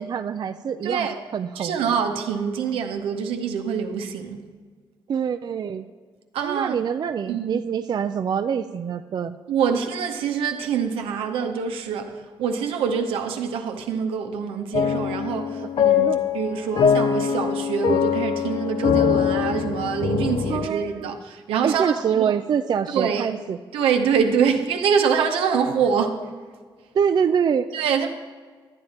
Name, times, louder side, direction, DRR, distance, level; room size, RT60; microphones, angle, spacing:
voice 1, 0.0-1.1 1.3-1.8 5.1-5.8 6.4-9.4 16.0-16.2 20.5-21.1 21.6-23.6 26.9-27.7, right 7 dB, 50° right, 0.4 m, -25 dB
voice 2, 0.8-1.2 1.6-4.4 6.3-6.7 7.3-7.6 9.5-16.1 16.3-22.3 22.9-23.3 23.7-26.2 27.7-28.1, right 6 dB, 85° right, 0.8 m, -25 dB
sound 1, 14.7-20.7, left 8 dB, 60° left, 0.6 m, -22 dB
11.5 x 8.7 x 4.3 m
supercardioid pair, 65°, 9 cm